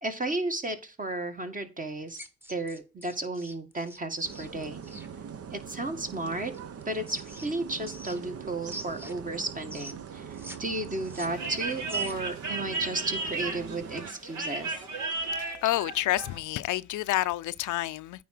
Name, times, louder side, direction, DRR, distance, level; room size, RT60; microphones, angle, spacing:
voice 1, 0.0-2.2 2.5-4.8 5.5-6.5 6.9-14.8, right 2 dB, 25° right, 1.8 m, -33 dB
sound 1, 2.1-5.1 6.5-8.4 8.7-10.6 10.8-12.4, equal, 5° right, 1.3 m, -45 dB
sound 2, 4.2-14.1, right 7 dB, 50° right, 0.9 m, -42 dB
sound 3, 11.3-16.4, right 3 dB, 70° right, 2.5 m, -34 dB
voice 2, 15.3-18.2, left 16 dB, 80° left, 0.5 m, -29 dB
9.4 x 3.8 x 6.0 m
cardioid pair, 90°, 30 cm